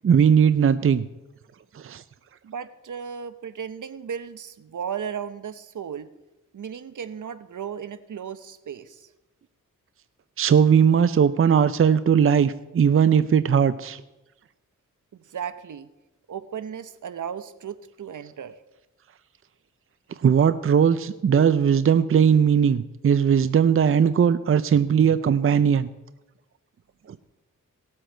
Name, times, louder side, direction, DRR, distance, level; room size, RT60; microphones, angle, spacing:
voice 1, 0.0-1.0 1.7-2.0 10.4-14.0 20.2-25.9, right 7 dB, 45° right, 13 dB, 0.5 m, -19 dB
voice 2, 2.4-6.1 6.5-9.1 15.1-15.9 16.3-18.6, right 7 dB, 70° right, 12 dB, 0.8 m, -35 dB
17.5 x 7.7 x 4.5 m, 1.0 s
cardioid pair, 55°, 32 cm